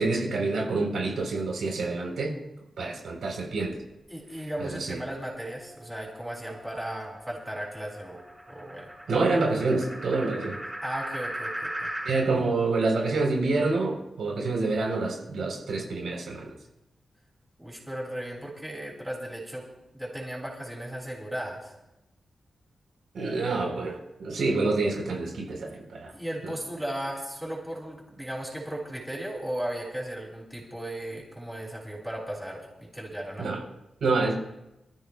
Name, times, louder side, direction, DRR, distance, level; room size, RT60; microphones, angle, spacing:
voice 1, 0.0-2.4 2.8-3.8 4.7-5.0 9.1-10.6 12.1-16.5 23.1-26.1 33.4-33.6 34.0-34.3, right 3 dB, 85° right, 0 dB, 4.1 m, -27 dB
voice 2, 4.1-8.2 8.5-8.9 10.8-11.9 17.6-19.7 19.9-21.7 26.1-33.6, right 1 dB, 5° right, -4 dB, 6.4 m, -36 dB
sound 1, 5.5-12.2, right 1 dB, 20° right, 6.6 m, -39 dB
29.0 x 14.5 x 2.4 m, 0.93 s
wide cardioid pair, 115°, 0 cm